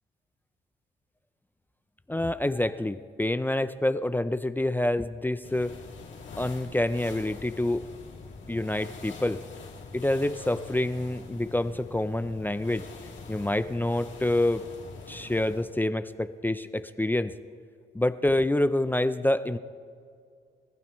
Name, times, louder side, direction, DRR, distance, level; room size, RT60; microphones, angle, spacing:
voice 1, 2.1-5.7 6.4-7.8 8.5-9.4 9.9-12.8 13.3-14.6 15.1-17.3 17.9-19.6, left 1 dB, 10° left, 11 dB, 0.5 m, -27 dB
sound 1, 5.4-15.7, left 4 dB, 70° left, 2.7 m, -44 dB
30.0 x 15.0 x 3.1 m, 2.2 s
cardioid pair, 110°, 20 cm